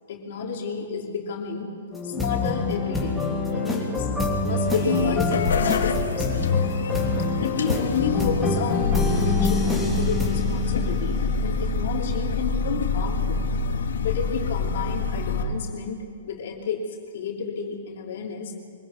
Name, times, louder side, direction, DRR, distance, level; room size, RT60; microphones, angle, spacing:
voice 1, 0.1-1.7 2.0-4.1 4.4-6.6 7.4-13.4 14.0-18.5, left 6 dB, 60° left, 0 dB, 3.0 m, -31 dB
sound 1, 1.9-11.5, left 2 dB, ahead, 3.1 m, -26 dB
sound 2, 4.5-15.4, left 5 dB, 85° left, 1.9 m, -26 dB
24.0 x 16.0 x 8.5 m, 2.1 s
hypercardioid pair, 150°, 0 cm